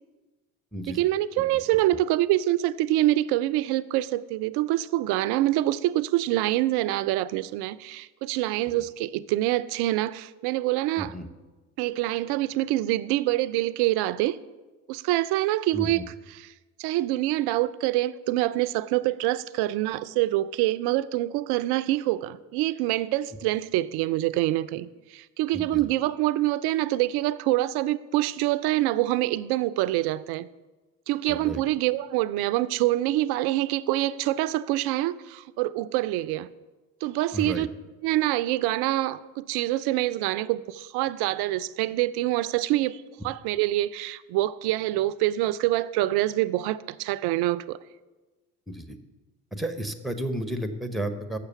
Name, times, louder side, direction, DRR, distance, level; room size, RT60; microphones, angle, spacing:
voice 1, 0.9-11.1 11.8-14.4 14.9-16.0 16.8-30.5 31.1-36.5 37.0-37.7 38.0-47.8, right 16 dB, 60° right, 16 dB, 0.5 m, -25 dB
voice 2, 11.0-11.3 15.7-16.0 25.5-25.8 31.3-31.6 37.3-37.7 48.7-49.0 49.5-51.4, right 1 dB, ahead, 9 dB, 0.9 m, -32 dB
6.8 x 6.7 x 7.0 m, 1.2 s
hypercardioid pair, 60°, 44 cm